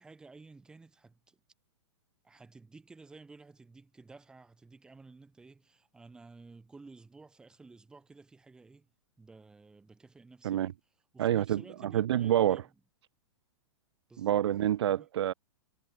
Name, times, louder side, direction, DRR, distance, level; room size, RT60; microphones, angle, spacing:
voice 1, 0.0-1.4 2.2-8.9 9.2-10.8 11.1-12.7 14.1-14.5 14.9-15.1, right 3 dB, 5° right, 2.6 m, -54 dB
voice 2, 11.2-12.6 14.2-15.3, right 11 dB, 60° right, 0.8 m, -27 dB
hypercardioid pair, 175°, 16 cm